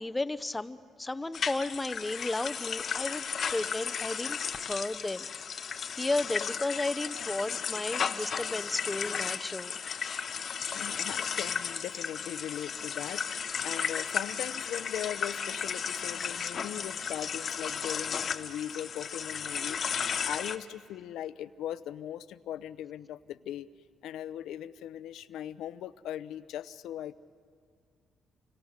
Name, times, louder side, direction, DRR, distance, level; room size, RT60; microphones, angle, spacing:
voice 1, 0.0-3.2 3.5-5.3 6.0-9.8, left 2 dB, 15° left, 13 dB, 0.9 m, -33 dB
sound 1, 1.3-20.6, left 7 dB, 50° left, 1.0 m, -34 dB
voice 2, 10.7-19.8 20.2-23.7 24.0-27.1, left 11 dB, 85° left, 15 dB, 0.7 m, -39 dB
30.0 x 25.5 x 6.6 m, 2.2 s
cardioid pair, 90°, 0 cm